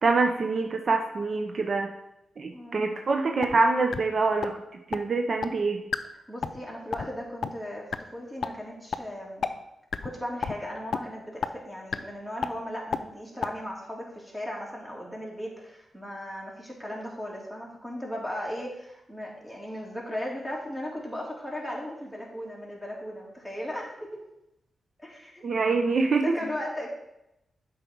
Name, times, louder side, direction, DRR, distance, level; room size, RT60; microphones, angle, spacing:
voice 1, 0.0-1.9 2.4-4.5 4.9-5.8 25.4-26.3, right 3 dB, 60° right, 3 dB, 0.6 m, -25 dB
voice 2, 2.5-2.9 6.3-9.5 10.0-24.1 25.0-25.4 26.2-26.9, equal, 5° right, -3 dB, 2.8 m, -37 dB
sound 1, 3.4-3.6 3.9-4.0 4.4-4.5 4.9-5.0 5.4-5.5 5.9-6.0 6.4-6.6 6.9-7.1 7.4-7.5 7.9-8.0 8.4-8.5 8.9-9.0 9.4-9.5 9.9-10.1 10.4-10.5 10.9-11.0 11.4-11.5 11.9-12.0 12.4-12.5 12.9-13.0 13.4-13.5, left 6 dB, 65° left, 0.4 m, -28 dB
7.8 x 5.0 x 4.6 m, 0.87 s
cardioid pair, 55°, 0 cm